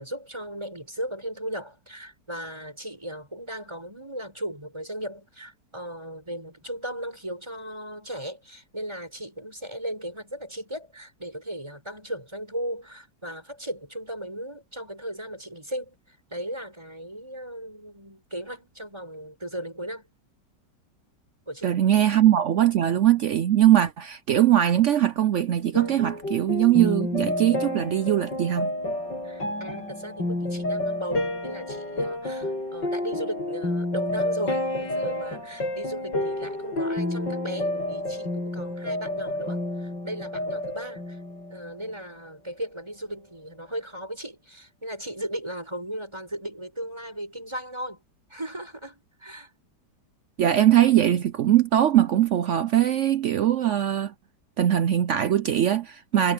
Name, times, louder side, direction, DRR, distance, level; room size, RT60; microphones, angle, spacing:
voice 1, 0.0-20.1 21.5-21.7 29.2-41.2 41.5-48.0 48.3-49.5 56.1-56.3, right 1 dB, 15° right, 7.9 m, -36 dB
voice 2, 21.6-28.7 50.4-54.1 54.6-56.3, right 11 dB, 80° right, 0.6 m, -21 dB
sound 1, 25.7-41.8, left 1 dB, 75° left, 8.2 m, -30 dB
omnidirectional pair, 2.0 m